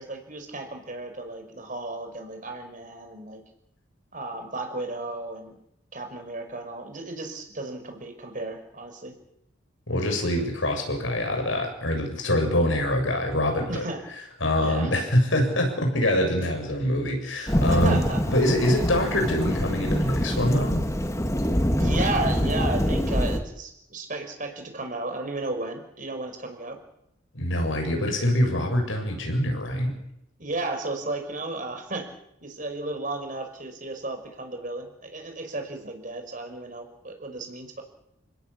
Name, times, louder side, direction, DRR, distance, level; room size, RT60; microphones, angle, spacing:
voice 1, 0.0-3.4 4.1-5.6 5.9-9.1 13.7-14.0 14.6-14.9 17.7-18.2 21.8-26.8 30.4-32.1 32.4-37.8, right 2 dB, 40° right, 5 dB, 5.6 m, -34 dB
voice 2, 9.9-13.9 14.4-20.9 27.3-30.0, left 1 dB, 70° left, 3 dB, 7.5 m, -24 dB
Thunderstorm / Rain, 17.5-23.4, equal, 15° left, 1.9 m, -25 dB
29.5 x 17.5 x 8.6 m, 0.78 s
head